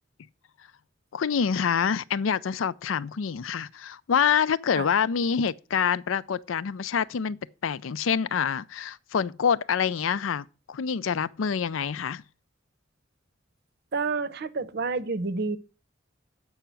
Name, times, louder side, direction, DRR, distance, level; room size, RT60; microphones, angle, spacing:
voice 1, 1.1-12.2, left 7 dB, 85° left, 0.5 m, -26 dB
voice 2, 13.9-15.6, right 4 dB, 55° right, 0.7 m, -29 dB
8.0 x 5.7 x 7.4 m
head